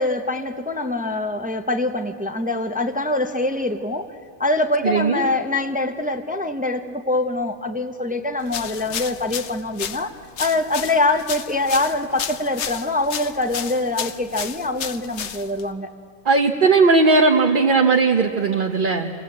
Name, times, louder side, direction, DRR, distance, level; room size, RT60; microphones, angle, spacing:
voice 1, 0.0-4.1 4.4-10.1 10.4-15.9, left 2 dB, 10° right, 7 dB, 0.7 m, -24 dB
voice 2, 4.8-5.3 16.2-19.1, right 4 dB, 50° right, 2 dB, 1.1 m, -17 dB
sound 1, 8.5-15.7, left 8 dB, 90° left, 1.1 m, -32 dB
27.5 x 19.0 x 8.6 m, 2.6 s
omnidirectional pair, 1.1 m